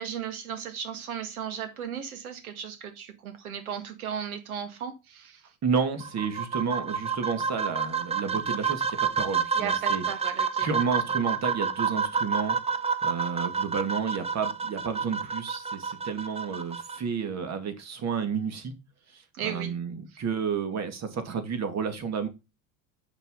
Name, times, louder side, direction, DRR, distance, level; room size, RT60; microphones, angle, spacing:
voice 1, 0.0-5.5 9.5-10.7 19.3-19.8, right 8 dB, 85° right, 1.8 m, -36 dB
voice 2, 5.6-10.0 10.6-18.7 19.1-22.3, right 6 dB, 40° right, 2.1 m, -31 dB
sound 1, 6.0-17.0, right 6 dB, 15° right, 0.7 m, -29 dB
7.1 x 5.5 x 3.8 m
hypercardioid pair, 85°, 42 cm